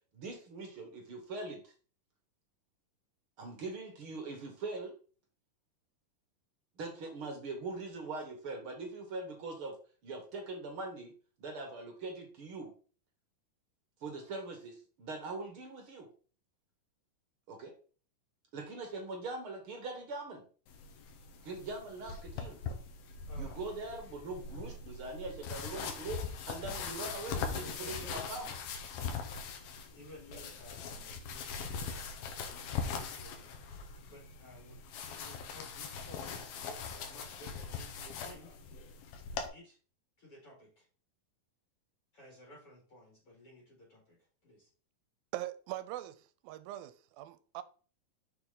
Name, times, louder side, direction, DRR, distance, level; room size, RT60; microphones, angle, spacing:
voice 1, 0.1-1.7 3.4-5.0 6.8-9.8 10.0-11.1 11.4-12.7 14.0-16.1 17.5-17.7 18.5-20.5 21.4-22.6 23.4-28.5 30.3-30.4, right 3 dB, 55° right, 1.6 m, -42 dB
sound 1, 20.7-39.5, left 5 dB, 90° left, 3.0 m, -41 dB
voice 2, 23.3-23.6 25.3-25.5 26.8-27.0 27.6-28.5 29.9-38.6 39.5-39.8 40.2-40.9 42.1-44.7, left 1 dB, 45° left, 2.7 m, -56 dB
voice 3, 45.3-47.6, right 14 dB, 85° right, 2.4 m, -42 dB
7.0 x 6.4 x 3.9 m
omnidirectional pair, 4.1 m